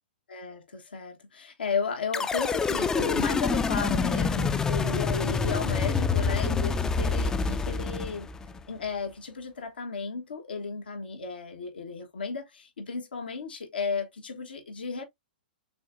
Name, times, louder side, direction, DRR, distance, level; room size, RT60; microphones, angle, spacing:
voice 1, 0.3-8.3 8.7-15.0, left 5 dB, 90° left, 1.4 m, -34 dB
sound 1, 2.1-8.6, left 5 dB, 10° left, 0.4 m, -27 dB
6.7 x 2.4 x 2.5 m
hypercardioid pair, 130°, 5 cm